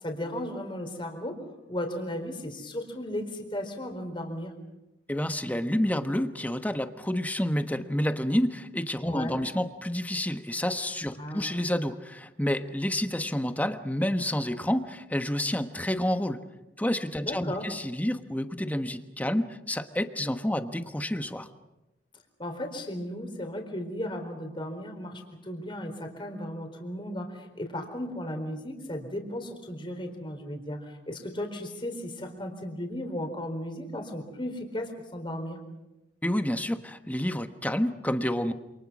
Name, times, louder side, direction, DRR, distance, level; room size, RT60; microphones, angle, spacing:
voice 1, 0.0-1.4 1.7-4.5 9.0-9.4 11.1-11.6 17.2-17.7 22.4-35.6, left 1 dB, 30° left, 4 dB, 4.3 m, -35 dB
voice 2, 5.1-16.4 16.8-21.5 36.2-38.5, left 1 dB, 10° left, 8 dB, 1.3 m, -29 dB
28.0 x 27.5 x 6.3 m, 0.97 s
head